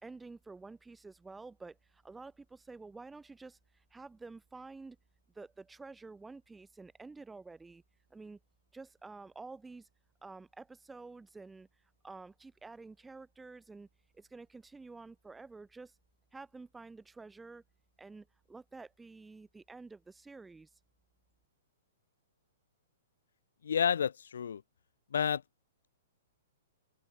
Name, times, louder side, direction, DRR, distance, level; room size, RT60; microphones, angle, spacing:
voice 1, 0.0-5.0 5.3-7.8 8.1-8.4 8.7-9.9 10.2-11.7 12.0-13.9 14.1-15.9 16.3-17.6 18.0-20.7, right 3 dB, 5° right, 1.5 m, -50 dB
voice 2, 23.6-24.6 25.1-25.4, left 7 dB, 80° left, 0.5 m, -30 dB
open air
hypercardioid pair, 180°, 0 cm